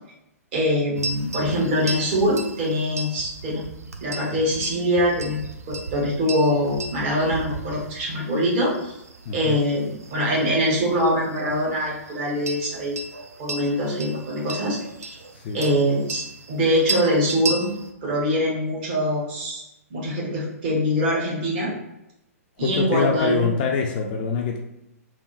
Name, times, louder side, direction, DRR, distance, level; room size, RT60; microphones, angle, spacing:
voice 1, 0.5-3.6 4.0-5.4 5.7-8.9 9.3-13.0 13.4-15.1 15.5-17.7 18.0-19.6 19.9-21.7 22.6-23.5, equal, 40° right, -4 dB, 1.3 m, -23 dB
sound 1, 1.0-17.9, right 3 dB, 75° right, 0.4 m, -36 dB
voice 2, 9.3-9.6 15.3-15.6 22.6-24.6, left 5 dB, 35° left, 1 dB, 0.4 m, -25 dB
3.4 x 2.2 x 2.7 m, 0.87 s
figure-of-eight pair, 115°, 8 cm